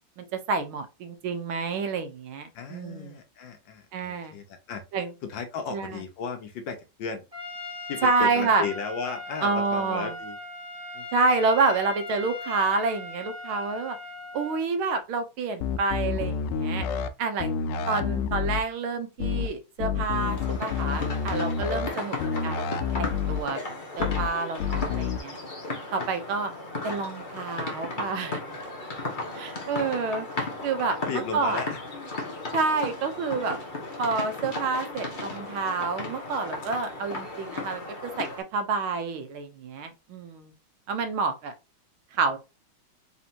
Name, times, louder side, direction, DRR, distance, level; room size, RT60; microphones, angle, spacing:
voice 1, 0.2-3.2 3.9-4.4 4.9-5.1 5.7-6.0 8.0-8.6 9.4-10.1 11.1-14.0 14.3-16.9 17.2-17.5 17.9-22.2 22.4-23.6 24.0-25.3 25.9-26.5 26.8-28.4 29.3-31.6 32.5-33.6 34.0-40.5 40.9-41.5 42.1-42.4, right 4 dB, 80° right, 1.6 m, -28 dB
voice 2, 2.5-4.8 5.2-7.2 7.9-10.4 10.9-11.1 17.6-18.4 21.7-21.9 31.1-31.8, left 5 dB, 70° left, 1.3 m, -35 dB
Trumpet, 7.3-14.6, left 2 dB, 20° right, 1.3 m, -39 dB
sound 1, 15.6-17.1 17.4-18.6 19.2-19.5 19.8-21.9 22.2-23.4 24.0-24.3 24.6-25.2, left 6 dB, 85° left, 1.5 m, -28 dB
sound 2, 20.2-38.4, left 2 dB, 35° left, 0.9 m, -35 dB
4.3 x 3.4 x 2.8 m
omnidirectional pair, 2.3 m